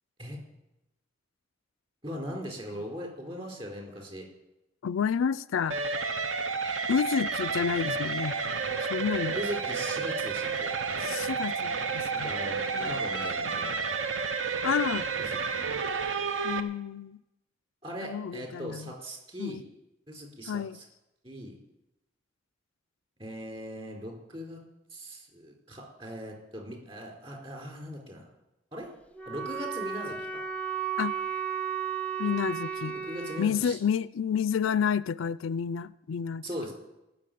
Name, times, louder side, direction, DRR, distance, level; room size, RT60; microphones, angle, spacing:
voice 1, 2.0-4.3 9.3-10.7 12.1-13.7 15.2-15.6 17.8-19.6 20.1-20.8 21.2-21.6 23.2-24.6 24.9-28.3 28.7-28.9 29.3-30.4 33.0-33.8 36.4-36.7, equal, 30° right, 4.4 m, -39 dB
voice 2, 4.8-5.8 6.9-8.4 8.8-9.4 11.0-12.3 12.8-13.0 14.6-15.1 16.4-17.2 18.0-18.9 19.4-19.6 20.5-20.8 31.0-31.2 32.2-33.0 33.4-36.4, left 7 dB, 80° left, 0.4 m, -30 dB
sound 1, 5.7-16.6, right 4 dB, 70° right, 1.0 m, -31 dB
Wind instrument woodwind instrument, 29.1-33.5, right 7 dB, 5° left, 0.7 m, -34 dB
16.5 x 7.1 x 9.3 m
head